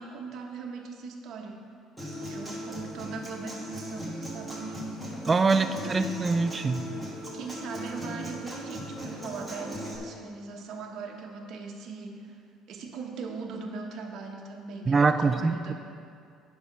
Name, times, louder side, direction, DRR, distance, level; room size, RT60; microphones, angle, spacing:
voice 1, 0.0-1.6 2.3-5.2 5.7-6.0 7.3-12.4 12.7-15.7, right 4 dB, 50° right, 1 dB, 1.1 m, -40 dB
Human voice / Acoustic guitar, 2.0-10.0, equal, ahead, 1.5 m, -38 dB
voice 2, 5.3-6.8 14.9-15.7, right 4 dB, 20° right, 10 dB, 0.4 m, -24 dB
9.7 x 5.7 x 5.4 m, 2.2 s
cardioid pair, 160°, 0 cm